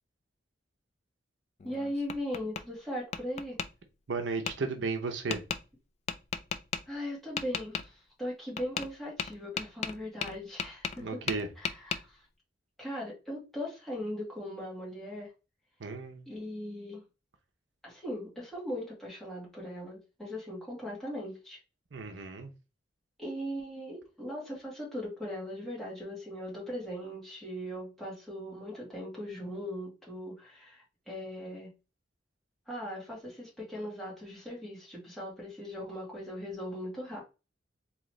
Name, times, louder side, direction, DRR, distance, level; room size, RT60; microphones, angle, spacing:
Tap, 1.6-2.6 3.1-3.7 4.5-4.6 5.3-5.6 6.1-6.8 7.4-7.9 8.6-8.9 9.2-11.0 11.3-12.0, left 6 dB, 35° left, 0.3 m, -34 dB
voice 1, 1.6-3.6 6.9-11.2 11.6-12.2 12.8-15.3 16.3-17.0 17.8-21.6 22.2-22.3 23.2-31.7 32.7-37.2, equal, ahead, -6 dB, 2.2 m, -39 dB
voice 2, 4.1-5.4 11.0-11.5 15.8-16.3 21.9-22.5, right 4 dB, 80° right, 5 dB, 0.7 m, -34 dB
3.8 x 3.0 x 3.1 m, 0.30 s
head